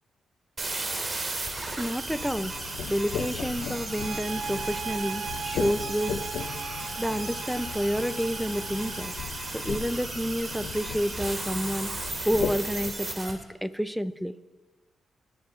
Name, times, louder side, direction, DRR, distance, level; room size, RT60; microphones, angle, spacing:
sound 1, 0.6-13.3, right 2 dB, 40° right, 2.9 m, -35 dB
voice 1, 1.8-2.5 2.9-6.2 7.0-9.1 9.5-11.9 12.2-14.3, equal, ahead, 14 dB, 0.7 m, -29 dB
sound 2, 2.1-12.9, left 8 dB, 80° left, 0.6 m, -38 dB
sound 3, 3.9-9.2, right 7 dB, 65° right, 0.4 m, -39 dB
20.0 x 7.1 x 4.6 m, 1.2 s
supercardioid pair, 55°, 0 cm